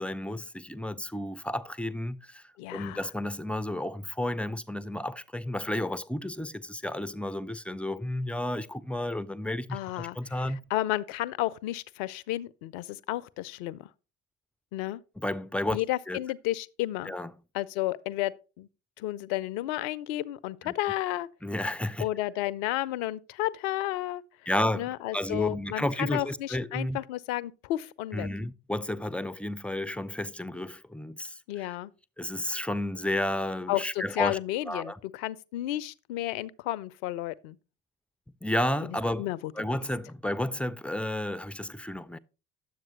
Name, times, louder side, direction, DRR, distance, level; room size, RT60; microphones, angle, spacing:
voice 1, 0.0-10.7 15.2-15.8 16.1-16.2 17.1-17.3 20.6-20.7 21.4-22.1 24.5-27.0 28.1-31.8 32.2-34.4 34.7-35.0 38.4-42.2, left 1 dB, 5° left, 0.3 m, -32 dB
voice 2, 2.6-3.1 9.7-13.9 14.7-15.0 15.7-17.1 17.5-18.7 19.0-21.3 22.0-24.2 24.7-28.3 31.5-31.9 33.7-37.6 39.2-39.5, left 15 dB, 65° left, 0.5 m, -32 dB
10.0 x 7.5 x 3.0 m
figure-of-eight pair, 45°, 37 cm